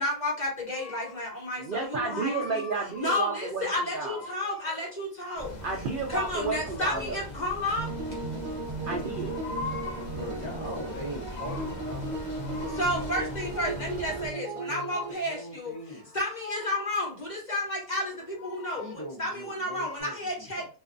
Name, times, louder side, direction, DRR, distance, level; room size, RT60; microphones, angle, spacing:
voice 1, 0.0-2.6 3.0-5.6 5.9-7.9 12.7-15.7 16.1-20.7, left 1 dB, 35° left, -4 dB, 1.0 m, -32 dB
sound 1, 0.7-1.3 1.6-3.3 3.9-5.0 6.0-7.4 8.9-10.2 10.7-11.9 12.4-13.7 15.5-17.2 18.0-19.1 19.6-20.0, left 4 dB, 70° left, 1.0 m, -43 dB
voice 2, 1.6-4.2 5.6-7.2 8.9-9.4, right 4 dB, 75° right, 0 dB, 0.4 m, -32 dB
sound 2, 5.4-14.3, left 1 dB, 50° left, 0.5 m, -41 dB
sound 3, 7.8-15.1, right 3 dB, 60° right, 0.9 m, -36 dB
voice 3, 10.1-13.2 15.1-16.0 18.8-20.7, equal, 30° right, -5 dB, 0.7 m, -41 dB
2.6 x 2.3 x 2.5 m, 0.35 s
omnidirectional pair, 1.5 m